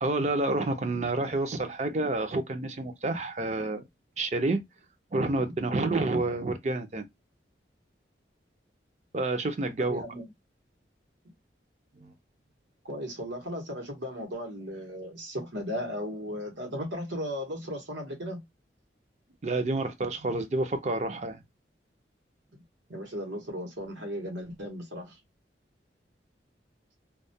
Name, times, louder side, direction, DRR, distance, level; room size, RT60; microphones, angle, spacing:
voice 1, 0.0-3.8 4.2-4.6 5.1-7.0 9.1-10.0 12.0-12.1 19.4-21.4, right 2 dB, 40° right, 0.4 m, -29 dB
voice 2, 9.8-10.2 12.8-18.4 22.5-22.6 22.9-25.2, equal, 85° right, 1.0 m, -36 dB
2.3 x 2.1 x 2.6 m
head